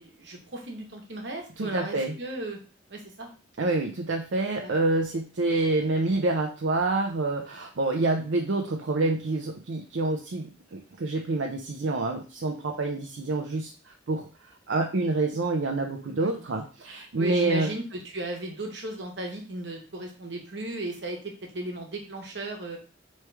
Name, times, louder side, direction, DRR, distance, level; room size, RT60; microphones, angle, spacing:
voice 1, 0.0-2.6 2.9-3.3 4.6-4.7 16.2-16.5 17.2-21.2 21.5-22.8, right 1 dB, 70° right, 2 dB, 1.2 m, -36 dB
voice 2, 1.6-2.1 3.6-13.7 14.1-14.3 14.7-17.7, right 2 dB, 85° right, 2 dB, 0.6 m, -27 dB
4.6 x 3.3 x 3.3 m, 0.35 s
head